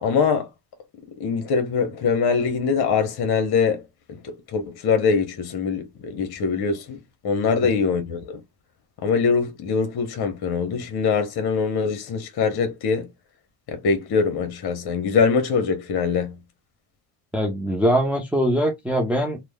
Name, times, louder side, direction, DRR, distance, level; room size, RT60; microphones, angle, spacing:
voice 1, 0.0-0.5 1.2-3.8 4.1-7.0 7.2-8.4 9.0-13.1 13.7-16.3, left 5 dB, 50° left, 0.9 m, -23 dB
voice 2, 17.3-19.4, equal, 5° right, 0.6 m, -22 dB
3.1 x 2.1 x 2.2 m
supercardioid pair, 65°, 49 cm